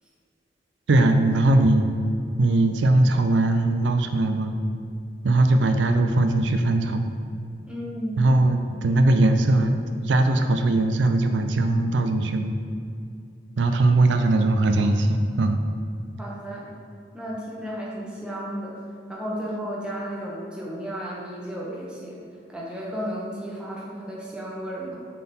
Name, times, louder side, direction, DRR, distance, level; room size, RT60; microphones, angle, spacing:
voice 1, 0.9-1.9 2.4-4.6 5.2-7.2 8.2-12.5 13.6-15.6, right 2 dB, 85° right, 6 dB, 0.4 m, -20 dB
voice 2, 7.7-8.3 16.2-16.8 17.1-18.8 19.1-22.2 22.5-25.0, equal, 5° right, -5 dB, 1.0 m, -33 dB
7.1 x 3.8 x 4.2 m, 2.4 s
head